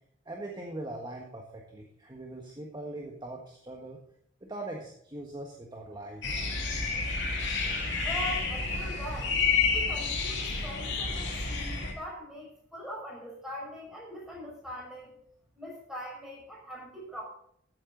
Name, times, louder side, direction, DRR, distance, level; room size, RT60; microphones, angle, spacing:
voice 1, 0.2-4.0 4.4-6.4, right 2 dB, 25° right, 0 dB, 1.5 m, -41 dB
sound 1, 6.2-11.9, left 4 dB, 65° left, 2.6 m, -30 dB
voice 2, 8.0-15.1 15.6-17.2, equal, 5° right, -3 dB, 5.5 m, -42 dB
14.5 x 8.8 x 3.9 m, 0.68 s
head